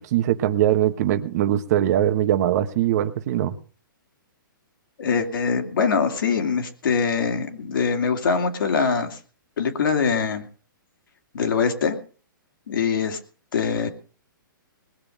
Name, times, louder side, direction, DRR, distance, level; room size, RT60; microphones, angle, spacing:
voice 1, 0.0-3.6, right 12 dB, 50° right, 10 dB, 1.3 m, -21 dB
voice 2, 5.0-9.2 9.6-10.4 11.3-12.0 12.7-13.2 13.5-13.9, left 5 dB, 70° left, 5 dB, 2.7 m, -23 dB
20.5 x 7.1 x 6.6 m, 0.40 s
hypercardioid pair, 130°, 11 cm